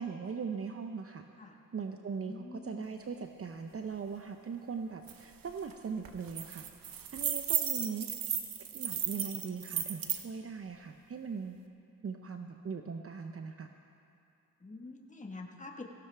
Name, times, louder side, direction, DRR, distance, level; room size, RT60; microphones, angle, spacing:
voice 1, 0.0-1.3 1.7-6.7 7.1-8.1 8.7-11.6 12.0-13.7, right 5 dB, 45° right, 5 dB, 0.7 m, -40 dB
voice 2, 2.2-2.8 14.6-15.8, left 3 dB, 20° left, 1 dB, 1.4 m, -46 dB
sound 1, 5.1-5.2 5.5-5.7 6.1-10.2, right 9 dB, 80° right, 0.9 m, -34 dB
17.5 x 16.0 x 3.4 m, 2.6 s
cardioid pair, 65°, 34 cm